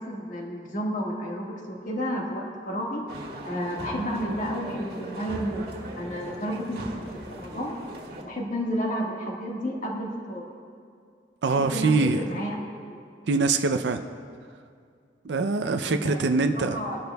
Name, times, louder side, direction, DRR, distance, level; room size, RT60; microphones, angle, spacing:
voice 1, 0.0-3.0 3.4-5.7 6.0-7.1 7.4-7.7 8.2-10.5 11.5-12.5 12.9-13.0 15.8-17.0, equal, 45° left, -1 dB, 1.7 m, -31 dB
sound 1, 3.1-8.2, right 1 dB, 60° right, 1.7 m, -39 dB
voice 2, 11.4-12.2 13.3-14.0 15.2-16.8, right 3 dB, 80° right, 7 dB, 0.5 m, -23 dB
20.5 x 11.5 x 2.3 m, 2.3 s
head